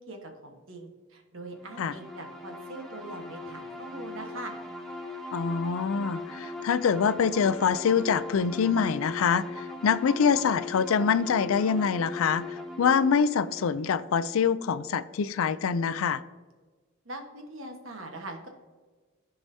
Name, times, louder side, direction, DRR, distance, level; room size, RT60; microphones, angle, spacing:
voice 1, 0.0-4.6 17.0-18.5, right 2 dB, 75° right, 4 dB, 1.3 m, -42 dB
sound 1, 1.6-15.1, left 2 dB, ahead, 0.7 m, -40 dB
voice 2, 5.3-16.2, left 6 dB, 80° left, 15 dB, 0.4 m, -25 dB
13.0 x 4.8 x 2.7 m, 1.4 s
head